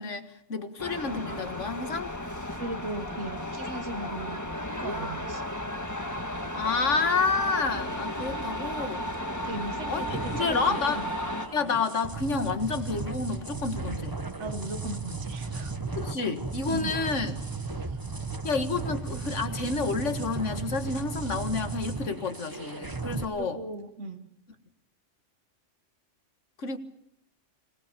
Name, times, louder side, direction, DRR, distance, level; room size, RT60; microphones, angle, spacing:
voice 1, 0.0-2.1 6.6-9.0 9.9-11.0 11.5-14.2 16.0-17.4 18.4-23.6 26.6-26.8, left 4 dB, 75° left, 8 dB, 2.1 m, -29 dB
sound 1, 0.8-11.5, left 1 dB, 15° left, 1.6 m, -34 dB
voice 2, 2.5-5.4 9.4-10.6 10.9-11.1 14.4-15.7 16.7-16.9 17.4-18.0 23.3-24.3, right 2 dB, 75° right, 9 dB, 1.7 m, -38 dB
sound 2, 10.0-23.2, right 3 dB, 20° right, 1.1 m, -35 dB
25.5 x 19.5 x 6.9 m, 0.74 s
omnidirectional pair, 1.2 m